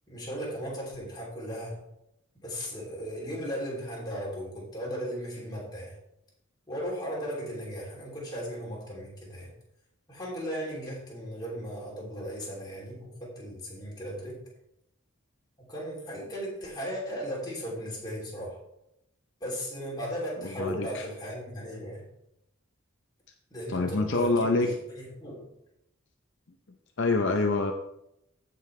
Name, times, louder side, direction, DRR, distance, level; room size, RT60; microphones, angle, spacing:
voice 1, 0.1-1.8 2.4-6.0 6.7-9.5 10.1-14.4 15.6-18.6 19.4-22.0 23.5-25.5, equal, 20° left, -4 dB, 2.9 m, -36 dB
voice 2, 20.4-21.1 23.7-24.7 27.0-27.7, left 3 dB, 60° left, 4 dB, 0.7 m, -26 dB
15.0 x 5.4 x 3.2 m, 0.82 s
head